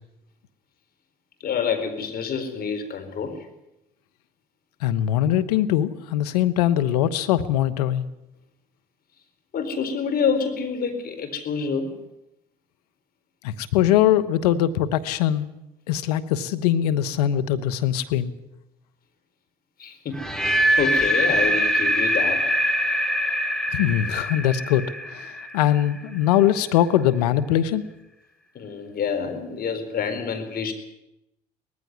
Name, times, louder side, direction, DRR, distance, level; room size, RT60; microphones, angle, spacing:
voice 1, 1.4-3.5 9.5-11.9 19.8-20.2 20.7-22.5 28.5-30.7, left 6 dB, 50° left, 7 dB, 4.4 m, -27 dB
voice 2, 4.8-8.0 13.4-15.4 15.9-18.3 23.7-24.8 25.1-27.8, left 11 dB, 85° left, 10 dB, 1.1 m, -21 dB
sound 1, 20.2-26.2, equal, 5° left, 2.8 m, -23 dB
19.0 x 15.0 x 9.7 m, 0.88 s
hypercardioid pair, 65°, 20 cm